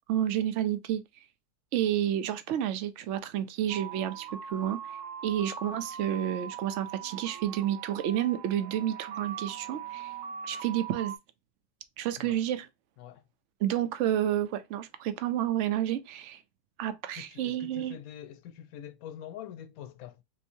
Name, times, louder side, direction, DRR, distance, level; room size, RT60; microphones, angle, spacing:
voice 1, 0.1-1.0 1.7-4.8 5.2-10.1 10.5-11.1 12.0-12.7 13.6-16.4 16.8-18.0, right 11 dB, 65° right, 0.7 m, -30 dB
sound 1, 3.7-11.2, right 7 dB, 80° right, 1.1 m, -41 dB
voice 2, 17.1-20.2, left 10 dB, 70° left, 1.0 m, -45 dB
3.5 x 3.0 x 2.6 m
omnidirectional pair, 1.6 m